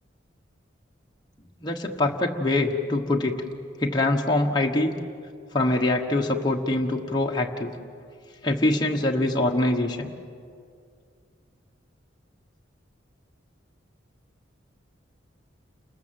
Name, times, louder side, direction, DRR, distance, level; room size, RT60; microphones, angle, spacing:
voice 1, 1.6-3.4 3.8-4.9 5.5-7.7 8.4-10.1, left 2 dB, 20° left, 0 dB, 1.3 m, -24 dB
29.0 x 20.0 x 7.7 m, 2.3 s
head